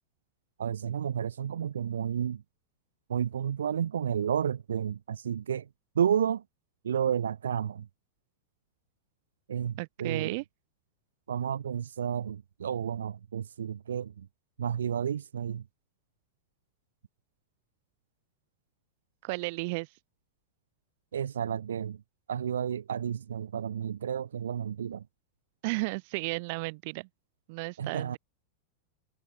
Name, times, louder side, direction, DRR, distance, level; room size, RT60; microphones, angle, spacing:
voice 1, 0.6-2.4 3.1-5.7 6.0-6.4 6.8-7.9 9.5-10.4 11.3-14.3 14.6-15.6 21.1-22.0 22.3-25.0 27.8-28.2, right 8 dB, 65° right, 1.8 m, -31 dB
voice 2, 9.8-10.4 19.2-19.9 25.6-27.1 27.5-28.2, right 27 dB, 45° right, 6.6 m, -33 dB
figure-of-eight pair, 90°, 0 cm